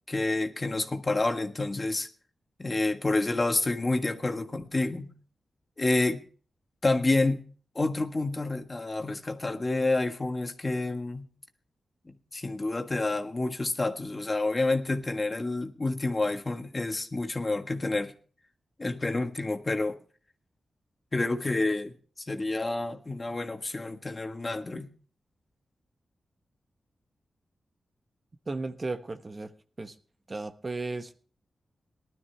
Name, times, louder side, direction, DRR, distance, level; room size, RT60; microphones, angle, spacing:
voice 1, 0.1-2.1 2.6-5.1 5.8-6.2 6.8-7.5 7.7-11.3 12.1-18.1 18.8-19.9 21.1-21.9 22.3-24.9, left 2 dB, 35° left, 1.5 m, -29 dB
voice 2, 28.5-29.5 29.8-29.9 30.3-31.1, right 3 dB, 40° right, 1.1 m, -35 dB
19.0 x 12.5 x 3.5 m
cardioid pair, 60°, 0 cm